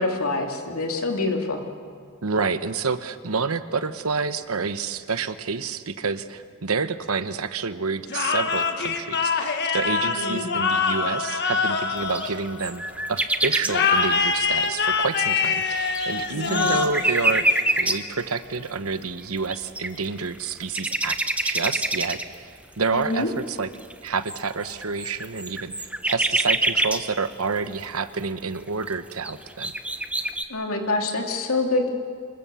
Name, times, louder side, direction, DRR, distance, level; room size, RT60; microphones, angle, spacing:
voice 1, 0.0-1.6 10.1-10.5 16.3-16.7 22.9-23.3 30.5-31.9, left 2 dB, 75° left, 2 dB, 2.9 m, -26 dB
voice 2, 2.2-12.8 13.1-17.5 17.8-22.5 22.8-23.7 24.0-29.7, right 4 dB, 75° right, 11 dB, 1.0 m, -28 dB
sound 1, 8.1-12.9 13.7-18.1, left 5 dB, 50° left, 1.4 m, -25 dB
sound 2, 12.1-13.7 15.1-15.2 15.7-18.2 19.2-19.3 19.5-20.2 20.6-22.3 23.0-23.1 23.7-27.0 28.2-28.3 28.8-28.9 29.2-30.4, right 1 dB, 5° right, 0.8 m, -25 dB
26.5 x 22.0 x 7.0 m, 2.2 s
head